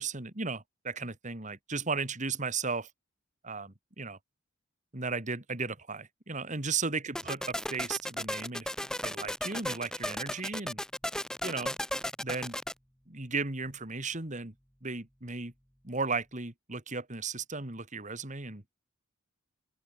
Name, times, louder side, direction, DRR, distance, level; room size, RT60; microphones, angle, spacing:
voice 1, 0.0-2.9 3.4-4.2 4.9-8.7 9.0-10.8 11.4-11.8 12.2-12.6 13.1-14.5 14.8-15.5 15.8-18.6, right 4 dB, 35° right, 2.5 m, -35 dB
sound 1, 7.2-12.7, left 1 dB, 5° left, 1.9 m, -35 dB
open air
head